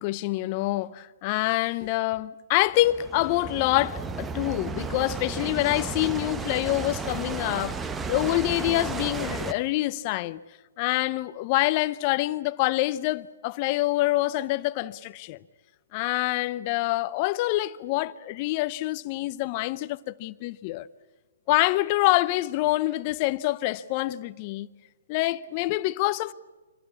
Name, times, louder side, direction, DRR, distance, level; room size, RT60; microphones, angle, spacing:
voice 1, 0.0-10.4 10.8-15.4 15.9-20.9 21.5-24.7 25.1-26.3, left 18 dB, 35° left, 0.7 m, -26 dB
sound 1, 2.7-9.5, right 4 dB, 10° right, 0.9 m, -33 dB
25.5 x 18.0 x 8.5 m
hypercardioid pair, 135°, 0 cm